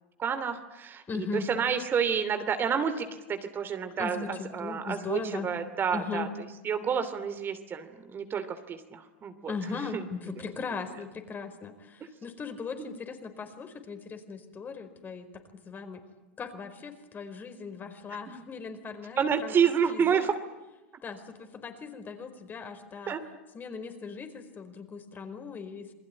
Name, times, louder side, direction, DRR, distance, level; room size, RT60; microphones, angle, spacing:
voice 1, 0.2-6.3 6.6-10.0 12.8-12.9 18.3-18.4 19.2-20.4 23.1-23.2, right 7 dB, 30° right, 9 dB, 2.8 m, -29 dB
voice 2, 1.1-1.5 4.0-5.5 5.9-6.3 9.5-16.0 16.4-19.5 19.9-20.2 21.0-23.2 23.5-25.9, left 5 dB, 30° left, 7 dB, 4.8 m, -38 dB
28.5 x 20.5 x 9.9 m, 1.1 s
hypercardioid pair, 105°, 7 cm